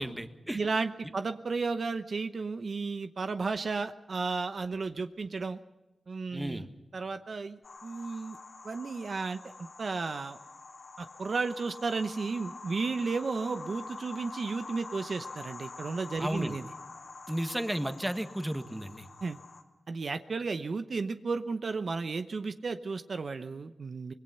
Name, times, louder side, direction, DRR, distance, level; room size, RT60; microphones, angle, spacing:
voice 1, 0.0-0.6 6.3-6.7 16.2-16.6 17.3-19.1, right 1 dB, 10° right, 8 dB, 1.5 m, -33 dB
voice 2, 0.5-5.6 6.1-8.4 8.6-10.4 11.0-16.7 19.2-19.4 19.9-24.1, right 4 dB, 65° right, 9 dB, 0.9 m, -33 dB
sound 1, 7.6-19.6, left 4 dB, 70° left, 2.8 m, -46 dB
25.0 x 20.5 x 5.7 m, 1.1 s
cardioid pair, 70°, 0 cm